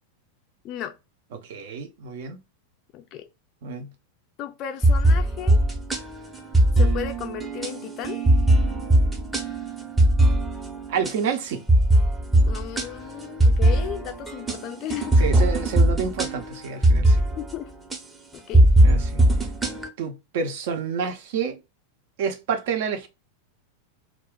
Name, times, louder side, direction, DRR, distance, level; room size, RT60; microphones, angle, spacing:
voice 1, 0.6-1.0 2.9-3.2 4.4-5.6 6.8-8.2 12.5-15.3 17.3-17.7 18.3-18.7, left 11 dB, 35° left, 0.4 m, -35 dB
voice 2, 1.3-2.4 3.6-3.9 10.9-11.6 15.2-17.2 18.8-19.2 20.0-21.6 22.2-23.1, right 6 dB, 55° right, 0.6 m, -29 dB
sound 1, 4.8-11.2 11.7-17.6 17.9-18.0 18.5-19.9, right 1 dB, 10° right, 0.7 m, -20 dB
2.4 x 2.2 x 3.6 m
figure-of-eight pair, 90°, 0 cm